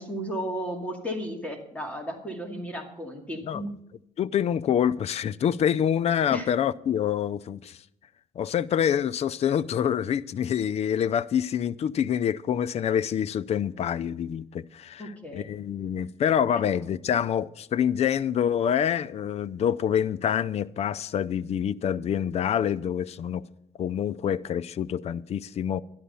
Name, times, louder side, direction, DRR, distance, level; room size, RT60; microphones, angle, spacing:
voice 1, 0.0-3.7 6.3-6.5 15.0-15.4, equal, 10° left, 2.3 m, -34 dB
voice 2, 4.2-7.8 8.4-23.4 23.8-25.8, left 9 dB, 45° left, 0.5 m, -26 dB
12.0 x 11.5 x 5.5 m
cardioid pair, 120°, 14 cm